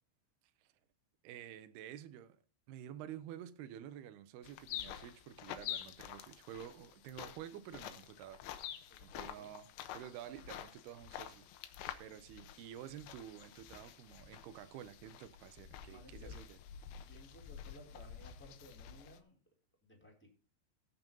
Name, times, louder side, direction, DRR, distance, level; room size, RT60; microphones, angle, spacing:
voice 1, 1.2-2.4 2.7-8.4 9.0-11.5 11.7-16.6, right 10 dB, 75° right, 2.6 m, -50 dB
sound 1, 4.4-19.2, left 10 dB, 85° left, 3.2 m, -49 dB
voice 2, 8.9-9.5 15.9-16.4 16.9-19.4 19.8-20.3, equal, 5° left, 3.2 m, -59 dB
17.0 x 6.0 x 5.4 m
omnidirectional pair, 5.2 m